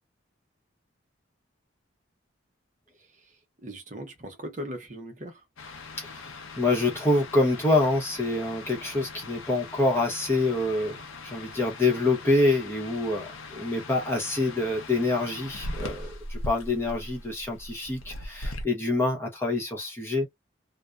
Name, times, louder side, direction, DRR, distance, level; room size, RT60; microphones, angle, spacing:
voice 1, 3.0-5.5, equal, 40° right, 0.7 m, -40 dB
sound 1, 5.6-18.6, left 2 dB, 85° left, 0.6 m, -40 dB
voice 2, 6.0-11.0 11.2-20.3, left 2 dB, 10° left, 0.8 m, -26 dB
2.5 x 2.1 x 2.3 m
head